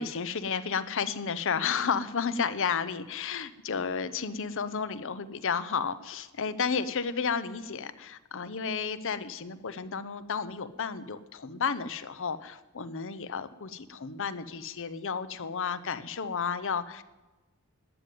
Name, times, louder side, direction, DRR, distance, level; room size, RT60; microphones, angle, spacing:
voice 1, 0.0-17.0, left 6 dB, 60° left, 14 dB, 0.8 m, -32 dB
13.0 x 9.2 x 9.3 m, 1.2 s
head